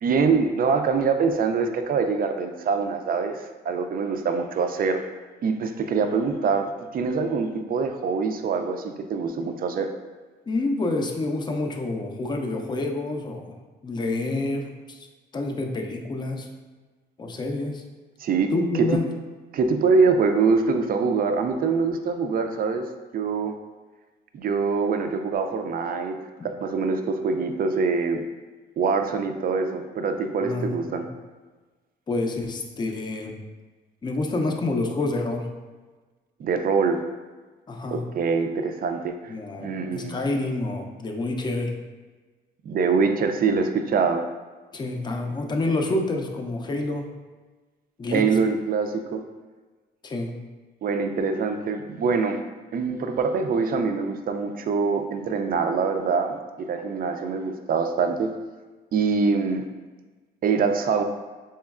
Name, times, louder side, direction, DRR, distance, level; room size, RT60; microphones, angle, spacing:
voice 1, 0.0-5.1 5.4-9.9 18.2-19.0 19.5-22.9 23.1-23.5 24.3-28.2 28.8-31.1 36.4-37.0 37.9-39.3 39.6-40.1 42.6-44.2 48.1-49.2 50.8-52.4 52.7-58.3 58.9-59.7 60.4-61.0, right 5 dB, 45° right, 7 dB, 0.4 m, -24 dB
voice 2, 10.5-13.6 13.8-15.0 15.3-16.5 17.2-17.8 18.5-19.0 30.4-30.7 32.1-33.4 34.0-35.5 37.7-38.0 39.3-41.7 44.7-47.1 48.0-48.3 50.0-50.4, left 2 dB, 20° left, 3 dB, 0.4 m, -28 dB
4.3 x 3.0 x 2.4 m, 1.3 s
cardioid pair, 90°, 20 cm